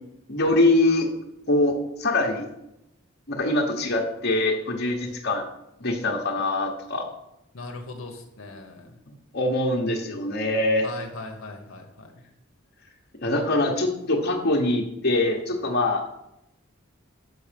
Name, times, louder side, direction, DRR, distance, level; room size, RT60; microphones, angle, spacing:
voice 1, 0.3-1.1 1.5-2.5 3.3-5.4 5.8-7.1 9.3-10.9 13.2-16.0, left 2 dB, 50° left, 1 dB, 1.2 m, -23 dB
voice 2, 7.5-8.9 10.8-12.1, left 3 dB, 75° left, 3 dB, 1.1 m, -39 dB
6.5 x 6.2 x 5.2 m, 0.84 s
head